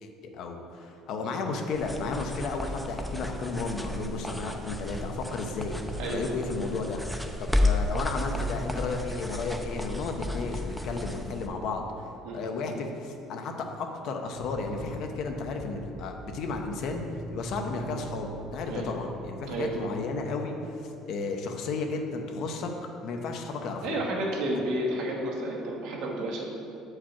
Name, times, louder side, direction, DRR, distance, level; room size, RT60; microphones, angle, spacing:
voice 1, 0.0-7.0 7.4-11.8 12.3-17.0 17.3-20.8 21.1-22.7 23.0-24.0, left 3 dB, 65° left, 4 dB, 0.7 m, -33 dB
sound 1, 1.7-11.5, left 1 dB, ahead, 0.5 m, -32 dB
sound 2, 14.3-20.0, right 1 dB, 50° right, 0.6 m, -43 dB
voice 2, 19.5-19.9 23.8-26.5, right 1 dB, 75° right, -2 dB, 1.3 m, -31 dB
7.2 x 4.9 x 4.4 m, 2.7 s
cardioid pair, 120°, 0 cm